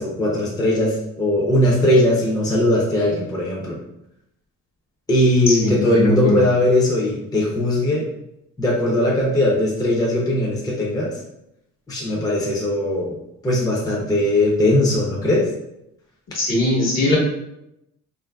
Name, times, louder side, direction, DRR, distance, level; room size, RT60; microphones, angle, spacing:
voice 1, 0.0-3.8 5.1-8.0 8.6-11.2 11.9-13.2 13.4-15.5, left 1 dB, 10° left, -3 dB, 0.6 m, -19 dB
voice 2, 5.5-6.4 16.3-17.2, left 2 dB, 60° left, -3 dB, 1.1 m, -20 dB
2.7 x 2.5 x 2.3 m, 0.85 s
cardioid pair, 90°, 30 cm